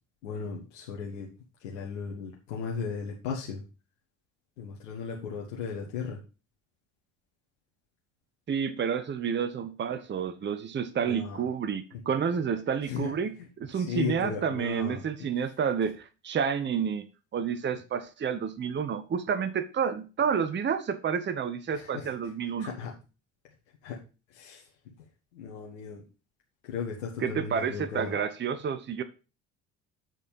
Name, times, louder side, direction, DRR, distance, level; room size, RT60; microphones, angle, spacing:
voice 1, 0.2-1.3 1.6-3.6 4.6-6.2 11.0-11.5 11.9-12.0 12.8-13.1 13.4-13.5 13.7-15.0 21.7-22.1 22.6-22.9 23.8-24.0 24.3-24.7 25.3-26.0 26.6-28.1, left 6 dB, 75° left, -3 dB, 1.6 m, -36 dB
voice 2, 8.5-17.1 17.3-22.7 27.2-29.0, right 7 dB, 30° right, 12 dB, 0.9 m, -30 dB
9.3 x 4.3 x 5.3 m, 0.32 s
hypercardioid pair, 60°, 38 cm